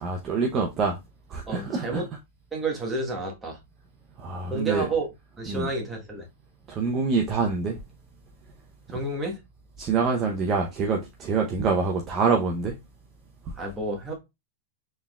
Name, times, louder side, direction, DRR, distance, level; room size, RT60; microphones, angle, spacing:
voice 1, 0.0-1.0 1.3-2.1 4.2-4.9 5.5-5.7 6.7-7.8 9.8-12.7, right 4 dB, 30° right, 0.8 m, -25 dB
voice 2, 1.5-2.1 2.5-3.6 4.5-5.1 5.4-6.3 8.9-9.4 13.6-14.1, right 2 dB, 15° right, 1.4 m, -30 dB
4.2 x 3.6 x 2.4 m
supercardioid pair, 140°, 0 cm